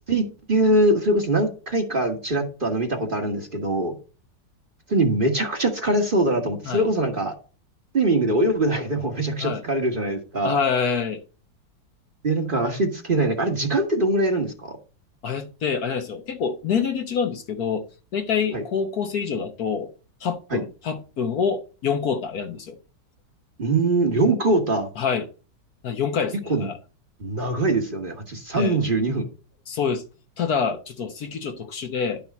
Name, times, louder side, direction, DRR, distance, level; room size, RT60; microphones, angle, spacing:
voice 1, 0.1-3.9 4.9-7.3 7.9-10.6 12.2-14.7 18.5-18.6 20.5-20.6 23.6-24.9 26.5-26.7 27.2-29.3, right 2 dB, 30° right, 1.5 m, -22 dB
voice 2, 10.4-11.2 15.2-17.9 18.1-19.9 20.2-22.8 25.0-25.3 25.8-26.8 28.6-28.8 29.7-30.0 30.4-32.2, left 6 dB, 60° left, 1.4 m, -26 dB
11.5 x 5.9 x 4.2 m
omnidirectional pair, 1.9 m